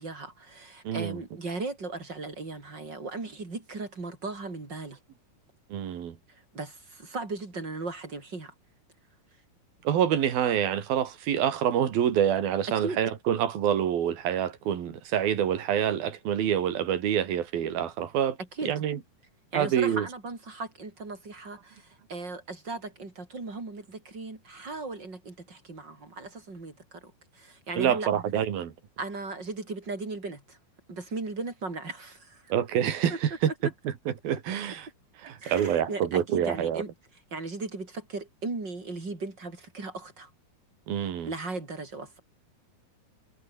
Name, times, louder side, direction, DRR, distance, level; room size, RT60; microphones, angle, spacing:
voice 1, 0.0-5.0 6.3-8.5 12.8-13.0 18.4-18.7 19.5-28.1 29.0-30.6 30.9-32.5 33.1-33.2 35.4-36.9 37.3-40.3 41.3-42.2, right 3 dB, 30° right, 5.6 m, -37 dB
voice 2, 0.9-1.2 5.7-6.2 9.8-18.4 18.7-19.0 19.6-20.1 27.8-28.7 32.5-33.5 34.2-34.9 35.2-36.8 40.9-41.3, right 9 dB, 80° right, 4.3 m, -26 dB
omnidirectional pair, 4.2 m